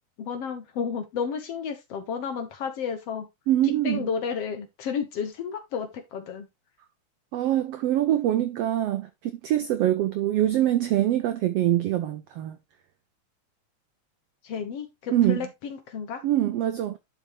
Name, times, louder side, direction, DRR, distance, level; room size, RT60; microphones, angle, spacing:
voice 1, 0.2-3.3 3.6-6.5 14.4-16.2, left 6 dB, 60° left, 2.0 m, -32 dB
voice 2, 3.5-4.1 7.3-12.6 15.1-15.4 16.2-17.0, right 13 dB, 80° right, 1.4 m, -24 dB
10.5 x 5.6 x 3.1 m
omnidirectional pair, 3.6 m